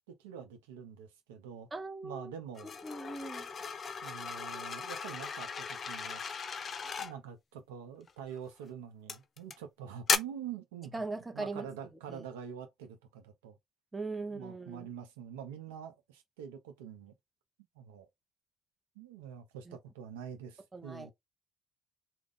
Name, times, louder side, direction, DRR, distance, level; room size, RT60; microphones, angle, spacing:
voice 1, 0.1-1.7 2.0-2.7 3.5-3.6 4.0-6.2 7.0-11.0 11.3-13.6 14.2-17.1 17.8-18.1 19.0-21.1, right 8 dB, 90° right, 0.5 m, -45 dB
voice 2, 1.7-2.3 2.6-3.5 10.9-11.7 12.1-12.2 13.9-14.9 19.7-19.8 20.7-21.1, right 3 dB, 20° right, 0.7 m, -40 dB
sound 1, 2.6-7.1 8.1-8.4 9.1-9.6 10.1-10.2, left 5 dB, 45° left, 0.4 m, -36 dB
2.3 x 2.0 x 3.5 m
hypercardioid pair, 65°, 0 cm